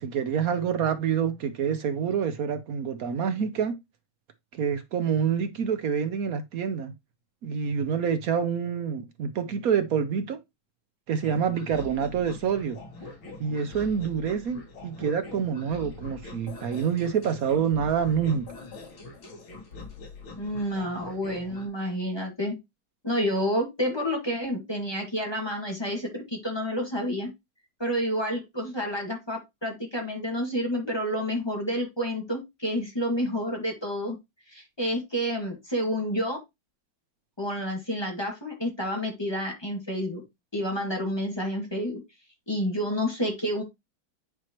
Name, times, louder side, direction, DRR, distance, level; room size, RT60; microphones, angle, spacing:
voice 1, 0.0-3.7 4.5-6.9 7.4-10.4 11.1-12.8 13.4-18.5, right 7 dB, 65° right, 0.9 m, -27 dB
sound 1, 11.2-21.7, left 3 dB, 80° left, 2.6 m, -43 dB
voice 2, 20.4-22.6 23.0-27.3 27.8-34.2 34.5-36.4 37.4-40.2 40.5-42.0 42.5-43.6, equal, 15° left, 1.8 m, -29 dB
9.4 x 4.6 x 2.9 m
omnidirectional pair, 2.2 m